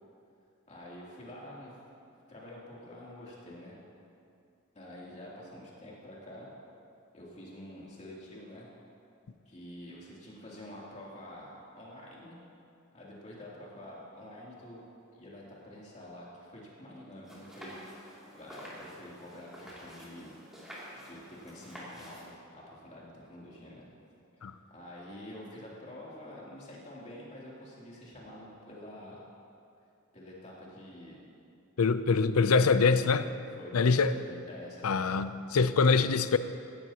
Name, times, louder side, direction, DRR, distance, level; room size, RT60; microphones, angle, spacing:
voice 1, 0.7-1.7 2.0-3.8 4.7-6.5 7.1-8.7 9.4-12.4 12.9-14.8 15.1-18.0 18.3-20.3 20.9-23.8 24.4-29.2 30.1-31.2 33.5-35.3, left 1 dB, 35° left, -6 dB, 3.0 m, -47 dB
sound 1, 17.2-22.2, equal, ahead, 2.7 m, -48 dB
voice 2, 31.8-33.3 33.7-34.1 34.8-36.4, left 4 dB, 90° left, 12 dB, 0.5 m, -24 dB
16.5 x 14.0 x 2.9 m, 2.5 s
head